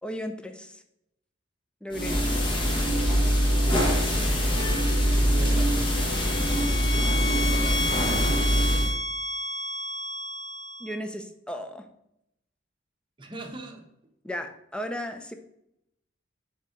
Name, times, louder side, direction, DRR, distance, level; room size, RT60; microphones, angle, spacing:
voice 1, 0.0-0.8 1.8-2.3 10.8-11.9 14.2-15.3, equal, 5° left, 6 dB, 0.5 m, -35 dB
sound 1, 1.9-8.9, equal, 25° left, 1.3 m, -23 dB
sound 2, 4.6-5.1 5.8-10.9, left 2 dB, 85° left, 2.4 m, -32 dB
voice 2, 5.3-5.9 7.2-7.9 13.2-13.9, right 2 dB, 25° right, 3 dB, 1.0 m, -40 dB
7.0 x 3.7 x 5.0 m, 0.80 s
head